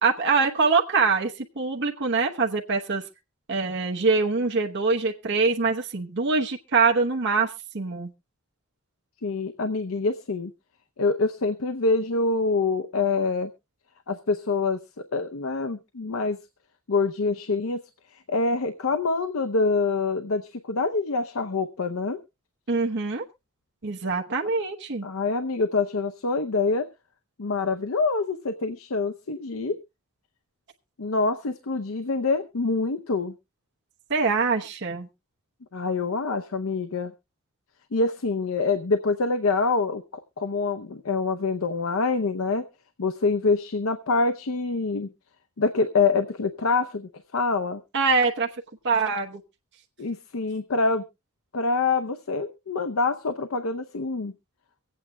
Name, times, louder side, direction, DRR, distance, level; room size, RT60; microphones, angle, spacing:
voice 1, 0.0-3.0 3.5-8.1 22.7-23.2 23.8-25.0 34.1-35.1 47.9-48.5 48.8-49.4, right 4 dB, 55° right, 1 dB, 1.0 m, -24 dB
voice 2, 9.2-10.5 11.0-13.5 14.1-14.8 15.1-16.4 16.9-17.8 18.3-22.2 25.0-26.9 27.4-29.8 31.0-33.3 35.7-37.1 37.9-40.0 40.4-42.6 43.0-45.1 45.6-47.8 50.0-51.0 51.5-54.3, left 3 dB, 70° left, 8 dB, 0.7 m, -25 dB
24.0 x 8.6 x 2.2 m, 0.24 s
head